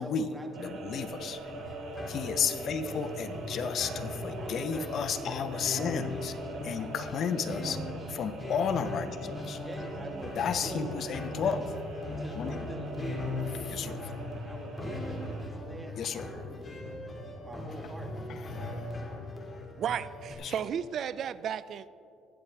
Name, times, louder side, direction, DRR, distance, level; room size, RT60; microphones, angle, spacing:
voice 1, 0.0-1.5 2.2-3.0 4.3-7.2 7.6-8.3 9.5-11.7 12.2-13.2 14.3-16.7 17.2-19.3, right 1 dB, 10° right, 3 dB, 1.4 m, -46 dB
sound 1, 0.5-15.5, right 3 dB, 65° right, 2.7 m, -44 dB
voice 2, 0.6-1.4 2.1-6.3 6.6-7.8 8.1-9.6 10.4-11.6 12.3-12.5 13.7-14.1 16.0-16.3 20.4-20.6, left 7 dB, 50° left, 10 dB, 0.6 m, -32 dB
sound 2, 1.3-20.4, left 2 dB, 20° left, 2.0 m, -39 dB
voice 3, 19.8-21.9, right 8 dB, 50° right, 16 dB, 0.3 m, -33 dB
20.5 x 7.0 x 3.3 m, 2.6 s
cardioid pair, 135°, 0 cm